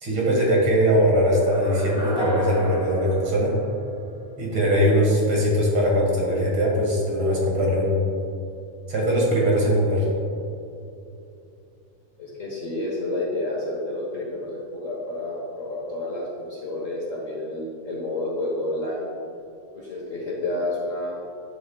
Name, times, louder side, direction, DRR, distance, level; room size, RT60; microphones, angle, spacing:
voice 1, 0.0-3.6 4.4-8.0 8.9-10.1, equal, 45° right, -3 dB, 2.4 m, -21 dB
sound 1, 1.3-4.4, right 2 dB, 5° right, 0.7 m, -31 dB
voice 2, 12.2-19.1 19.7-21.2, left 2 dB, 80° left, -5 dB, 0.7 m, -30 dB
11.0 x 9.4 x 2.4 m, 2.7 s
omnidirectional pair, 3.6 m